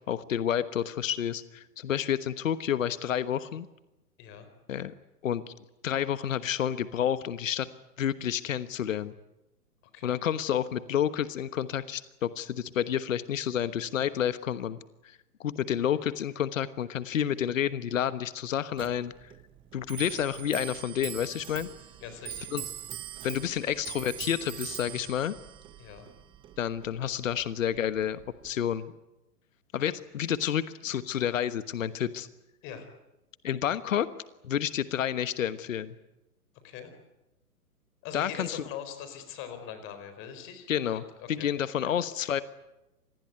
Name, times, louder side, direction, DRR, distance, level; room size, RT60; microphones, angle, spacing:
voice 1, 0.1-3.7 4.7-4.9 5.2-5.5 5.8-7.7 8.0-9.1 10.0-14.8 15.0-19.3 19.7-21.7 22.5-22.6 23.2-25.3 26.6-28.9 29.7-32.3 33.4-34.1 34.4-35.9 38.1-38.6 40.7-42.4, left 9 dB, 55° left, 14 dB, 1.3 m, -30 dB
Clock, 18.7-28.6, right 11 dB, 10° right, 0.9 m, -43 dB
voice 2, 22.0-22.7 25.8-26.1 32.6-32.9 36.6-36.9 38.0-41.5 41.8-41.9, left 8 dB, 25° left, 9 dB, 4.4 m, -42 dB
26.5 x 20.0 x 9.4 m, 0.95 s
figure-of-eight pair, 125°, 46 cm